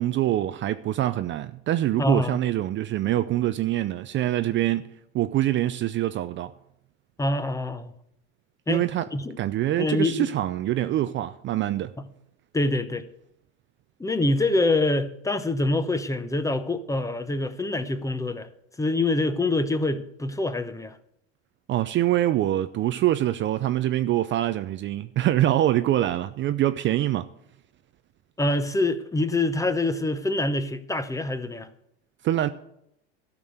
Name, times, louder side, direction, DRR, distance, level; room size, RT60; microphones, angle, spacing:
voice 1, 0.0-6.5 8.7-9.1 9.4-11.9 21.7-27.3 32.2-32.5, right 13 dB, 35° right, 0.5 m, -24 dB
voice 2, 2.0-2.4 7.2-7.9 8.7-8.8 9.1-9.3 9.8-10.3 12.0-12.1 12.5-13.1 14.0-18.5 18.8-21.0 28.4-31.7, left 2 dB, 10° left, 0.8 m, -25 dB
12.5 x 6.1 x 8.0 m
supercardioid pair, 105°, 35 cm